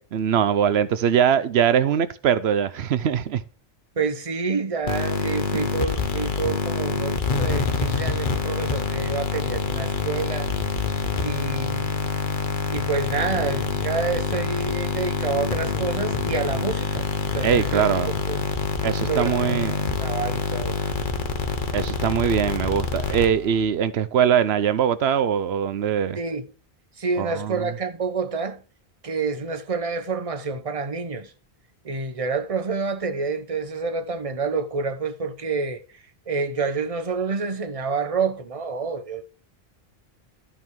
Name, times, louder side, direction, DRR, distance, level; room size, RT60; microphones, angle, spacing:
voice 1, 0.1-3.4 5.5-5.6 17.4-18.1 18.8-19.8 21.7-26.2 27.2-27.7, right 8 dB, 85° right, 0.9 m, -22 dB
voice 2, 4.0-10.5 11.2-12.1 12.7-17.0 17.3-18.5 19.0-19.6 20.0-20.8 21.2-21.4 26.2-26.4 27.0-28.6 29.0-31.3 31.8-39.3, right 4 dB, 35° right, 1.0 m, -28 dB
sound 1, 4.9-23.6, left 5 dB, 55° left, 1.2 m, -26 dB
12.5 x 5.6 x 4.6 m
omnidirectional pair, 1.0 m